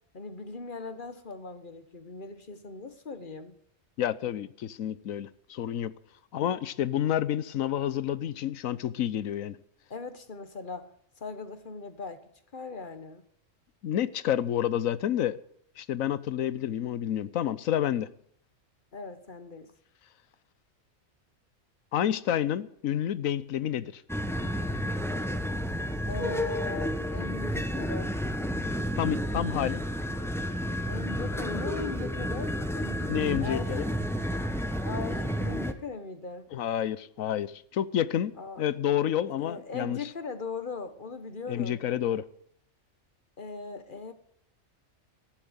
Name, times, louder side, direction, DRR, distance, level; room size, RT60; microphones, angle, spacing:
voice 1, 0.1-3.6 9.9-10.9 11.2-13.2 18.9-19.7 26.1-28.2 30.9-34.0 34.8-36.5 38.4-38.6 39.3-41.8 43.4-44.1, left 4 dB, 40° left, 1.5 m, -39 dB
voice 2, 4.0-5.9 6.3-9.6 13.8-15.4 15.8-18.1 21.9-24.0 29.0-29.8 33.1-33.9 36.5-40.0 41.5-42.2, left 10 dB, 85° left, 1.2 m, -29 dB
sound 1, 24.1-35.7, equal, ahead, 1.0 m, -31 dB
14.5 x 10.5 x 8.2 m
omnidirectional pair, 1.4 m